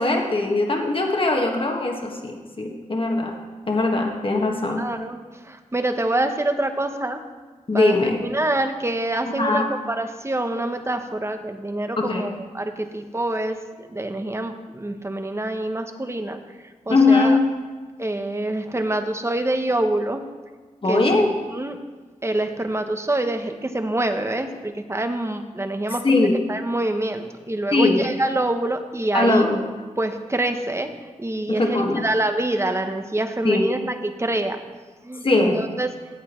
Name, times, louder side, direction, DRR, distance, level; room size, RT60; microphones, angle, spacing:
voice 1, 0.0-3.4 3.7-4.8 7.7-8.2 9.4-9.7 12.0-12.3 16.9-17.5 20.8-21.3 26.0-26.3 27.7-28.1 29.1-29.6 31.5-32.1 33.4-33.7 35.2-35.7, left 2 dB, 40° left, 1 dB, 1.5 m, -20 dB
voice 2, 4.8-5.2 5.5-7.2 7.7-13.6 13.9-16.4 16.9-17.4 18.0-20.3 20.9-21.3 21.5-21.8 22.2-29.5 30.0-30.9 31.2-34.6 35.0-35.9, right 1 dB, 20° right, 7 dB, 0.9 m, -26 dB
14.5 x 8.3 x 3.1 m, 1.4 s
cardioid pair, 65°, 14 cm